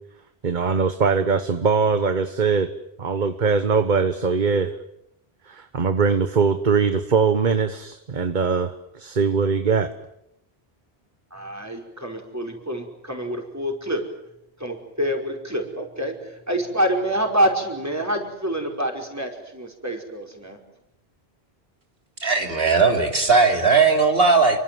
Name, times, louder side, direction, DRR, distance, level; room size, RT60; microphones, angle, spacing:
voice 1, 0.4-2.7 3.0-4.7 5.5-9.9, right 5 dB, 50° right, 10 dB, 1.3 m, -21 dB
voice 2, 11.3-14.0 14.6-20.6, right 1 dB, 15° right, 3 dB, 5.3 m, -26 dB
voice 3, 22.2-24.6, right 4 dB, 65° right, 3 dB, 3.3 m, -18 dB
29.0 x 24.5 x 7.8 m, 0.83 s
omnidirectional pair, 1.1 m